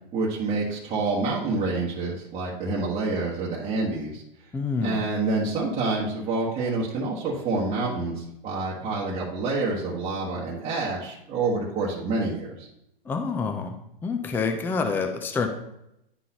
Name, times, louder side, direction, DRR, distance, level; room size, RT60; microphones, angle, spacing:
voice 1, 0.1-4.2 4.8-12.7, right 3 dB, 20° right, -7 dB, 1.3 m, -27 dB
voice 2, 4.5-5.0 13.1-13.7 14.0-15.5, left 4 dB, 5° left, 5 dB, 0.4 m, -27 dB
11.0 x 3.8 x 2.8 m, 0.82 s
hypercardioid pair, 125°, 29 cm